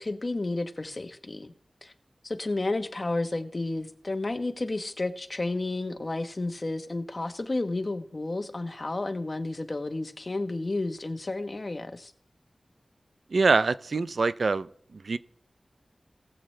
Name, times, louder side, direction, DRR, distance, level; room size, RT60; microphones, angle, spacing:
voice 1, 0.0-1.5 1.8-1.9 2.2-12.1, left 2 dB, 45° left, 1.0 m, -31 dB
voice 2, 13.3-14.7 14.9-15.2, right 4 dB, 80° right, 0.4 m, -24 dB
19.0 x 7.7 x 3.2 m
wide cardioid pair, 70°, 0 cm